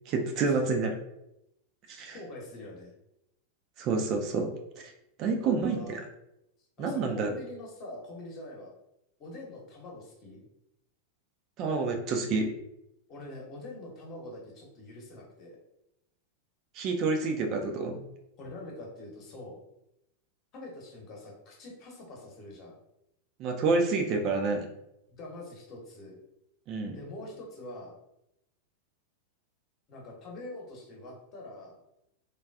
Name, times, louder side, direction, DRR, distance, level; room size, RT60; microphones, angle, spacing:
voice 1, 0.1-0.9 1.9-2.2 3.8-4.9 5.2-6.0 6.8-7.3 11.6-12.5 16.7-18.0 23.4-24.7 26.7-27.0, right 4 dB, 40° right, 3 dB, 0.4 m, -28 dB
voice 2, 2.1-2.9 5.2-6.0 6.8-8.7 9.2-10.4 13.1-15.6 18.4-19.6 20.5-22.8 25.1-26.2 26.9-27.9 29.9-31.8, left 1 dB, 35° left, -1 dB, 0.9 m, -44 dB
3.5 x 2.3 x 2.3 m, 0.83 s
figure-of-eight pair, 90°, 0 cm